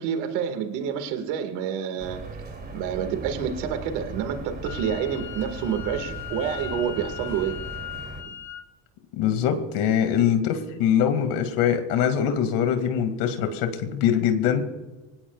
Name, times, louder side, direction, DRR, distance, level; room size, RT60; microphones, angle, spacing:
voice 1, 0.0-2.2 2.7-7.6, right 7 dB, 75° right, 7 dB, 2.1 m, -28 dB
sound 1, 2.0-8.2, right 3 dB, 20° right, 3.0 m, -38 dB
Wind instrument woodwind instrument, 4.6-8.6, left 11 dB, 45° left, 3.6 m, -39 dB
voice 2, 9.1-14.7, left 8 dB, 70° left, 7 dB, 2.4 m, -23 dB
25.0 x 18.0 x 2.4 m, 1.1 s
supercardioid pair, 115°, 42 cm